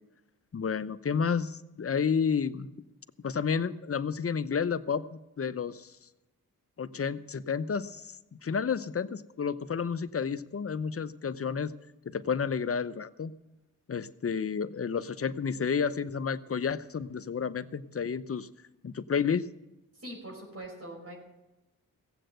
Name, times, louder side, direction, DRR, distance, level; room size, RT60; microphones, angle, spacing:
voice 1, 0.5-2.7 3.2-5.9 6.8-11.7 12.0-13.3 13.9-18.5 18.8-19.5, left 6 dB, 40° left, 14 dB, 0.8 m, -31 dB
voice 2, 19.9-21.1, right 1 dB, 45° right, -1 dB, 5.1 m, -42 dB
16.0 x 7.8 x 7.9 m, 0.99 s
cardioid pair, 45°, 35 cm